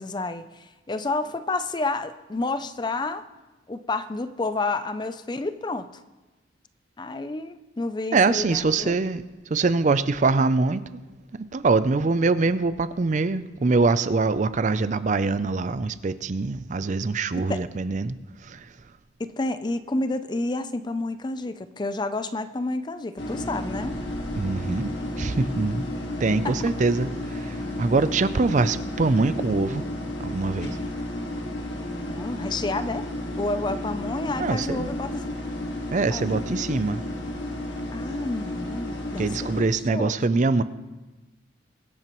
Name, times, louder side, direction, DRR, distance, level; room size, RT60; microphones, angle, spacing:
voice 1, 0.0-3.2 3.7-5.9 7.0-8.9 17.4-17.6 19.2-24.0 26.4-26.5 32.1-33.1 33.4-35.3 36.1-36.4 37.9-40.1, left 2 dB, 25° left, 11 dB, 0.4 m, -30 dB
voice 2, 8.1-11.0 11.5-18.2 18.4-18.7 24.4-25.9 26.2-29.8 30.2-30.8 34.4-34.9 35.9-37.0 39.2-40.6, right 3 dB, 40° right, 14 dB, 0.4 m, -24 dB
sound 1, 23.2-39.6, left 1 dB, 70° left, 1.8 m, -32 dB
23.0 x 8.7 x 3.1 m, 1.1 s
head